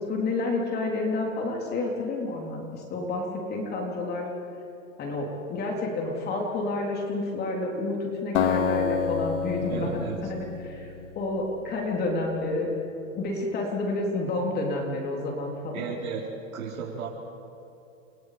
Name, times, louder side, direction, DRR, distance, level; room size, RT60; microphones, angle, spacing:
voice 1, 0.1-4.3 5.0-12.7 13.1-15.8, left 2 dB, 25° left, 0 dB, 3.8 m, -30 dB
Acoustic guitar, 8.3-11.5, left 6 dB, 60° left, 2.3 m, -28 dB
voice 2, 9.7-10.3 15.7-16.2 16.5-17.1, right 6 dB, 85° right, -4 dB, 4.8 m, -34 dB
30.0 x 28.5 x 5.2 m, 2.9 s
hypercardioid pair, 150°, 41 cm